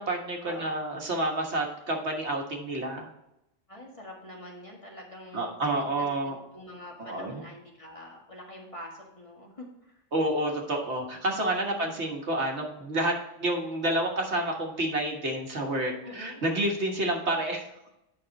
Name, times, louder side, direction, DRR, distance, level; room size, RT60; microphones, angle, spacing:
voice 1, 0.0-3.1 5.3-6.4 7.0-7.4 10.1-13.1 13.4-17.9, right 1 dB, 65° right, 1 dB, 1.7 m, -29 dB
voice 2, 3.7-10.0 11.6-12.0 16.0-16.4, left 1 dB, 25° left, -2 dB, 1.9 m, -45 dB
9.1 x 5.8 x 4.1 m, 0.86 s
omnidirectional pair, 1.2 m